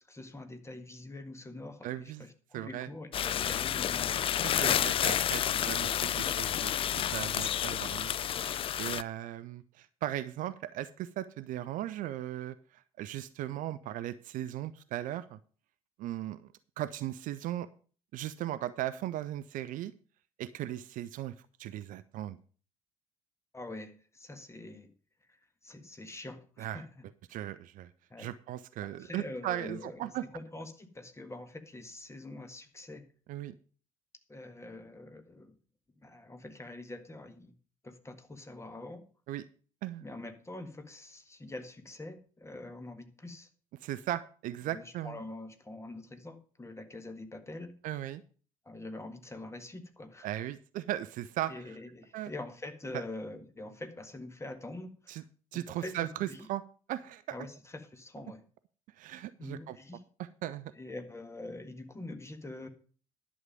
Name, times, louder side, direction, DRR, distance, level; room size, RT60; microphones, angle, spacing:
voice 1, 0.1-4.3 23.5-24.9 25.3-27.4 28.1-28.3 28.8-33.1 34.3-35.6 36.0-37.5 37.8-39.0 40.0-43.5 44.6-47.7 48.6-50.3 51.5-55.2 55.5-56.5 57.3-58.4 59.4-60.0 60.6-62.7, left 2 dB, 15° left, 8 dB, 1.6 m, -45 dB
voice 2, 1.8-2.2 2.5-2.9 4.4-6.7 7.1-15.4 16.0-17.7 18.1-19.9 20.4-21.3 21.6-22.4 26.6-26.8 27.3-27.9 28.2-30.3 33.3-33.5 39.3-39.4 39.8-40.0 43.8-45.2 47.8-48.2 50.2-51.5 52.1-52.3 55.1-55.2 55.5-56.6 56.9-57.2 59.0-59.8 60.4-60.7, right 13 dB, 50° right, 15 dB, 0.6 m, -37 dB
sound 1, 3.1-9.0, left 10 dB, 30° left, 0.4 m, -30 dB
11.0 x 7.3 x 5.1 m, 0.40 s
figure-of-eight pair, 50°, 18 cm